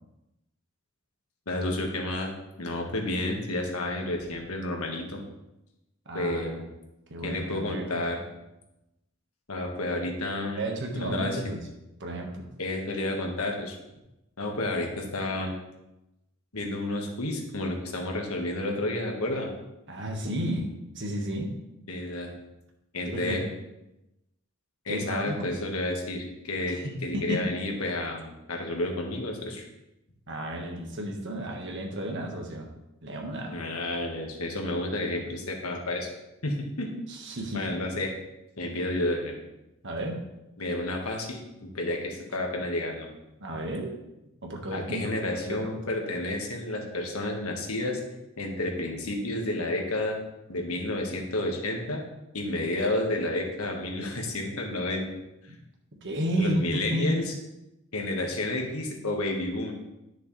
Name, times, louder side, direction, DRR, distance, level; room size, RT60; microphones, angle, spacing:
voice 1, 1.5-2.3 2.6-5.2 6.1-6.5 7.2-8.2 9.5-10.7 11.0-11.4 12.6-13.8 14.4-15.5 16.5-19.5 21.9-22.3 22.9-23.4 24.8-29.6 33.5-36.1 36.4-36.9 37.5-38.1 38.6-39.3 40.6-43.1 44.7-48.0 48.4-50.2 50.5-52.0 52.3-55.1 56.4-57.3 57.9-59.7, left 1 dB, 90° left, 1 dB, 1.6 m, -30 dB
voice 2, 6.0-6.6 7.1-8.0 10.6-11.7 12.0-12.5 19.9-21.5 23.1-23.4 24.9-25.5 26.7-27.4 30.3-32.7 33.0-33.6 37.1-37.7 39.8-40.2 43.4-44.0 44.4-45.8 55.5-55.6 56.0-57.2, equal, 60° right, 1 dB, 1.6 m, -32 dB
11.0 x 6.5 x 3.3 m, 0.93 s
head